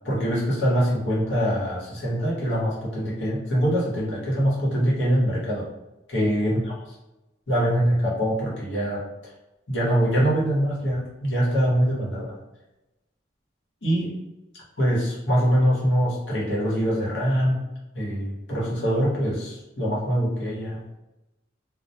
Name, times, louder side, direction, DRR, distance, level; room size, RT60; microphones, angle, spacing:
voice 1, 0.0-5.7 6.1-6.7 7.5-9.0 9.7-12.4 13.8-14.1 14.8-17.6 17.9-20.8, equal, 90° left, -6 dB, 1.0 m, -23 dB
2.1 x 2.1 x 2.7 m, 0.99 s
head